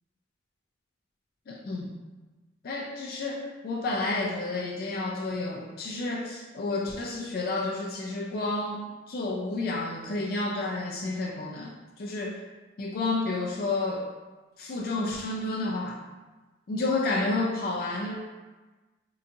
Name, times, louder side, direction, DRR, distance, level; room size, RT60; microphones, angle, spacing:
voice 1, 1.5-1.9 2.6-12.4 12.8-14.1 14.6-16.0 16.7-18.2, left 2 dB, 50° left, -1 dB, 0.3 m, -30 dB
3.8 x 2.3 x 2.6 m, 1.2 s
head